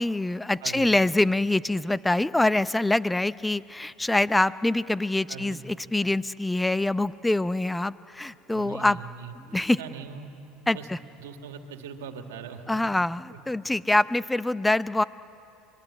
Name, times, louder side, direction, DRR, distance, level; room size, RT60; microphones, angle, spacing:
voice 1, 0.0-9.0 9.5-9.8 10.7-11.0 12.7-15.0, left 2 dB, 10° left, 16 dB, 0.6 m, -25 dB
voice 2, 5.3-5.6 8.5-10.3 10.7-10.9 11.2-12.6 13.3-13.4, right 6 dB, 85° right, 5 dB, 2.0 m, -41 dB
26.0 x 22.5 x 9.9 m, 2.9 s
hypercardioid pair, 90°, 0 cm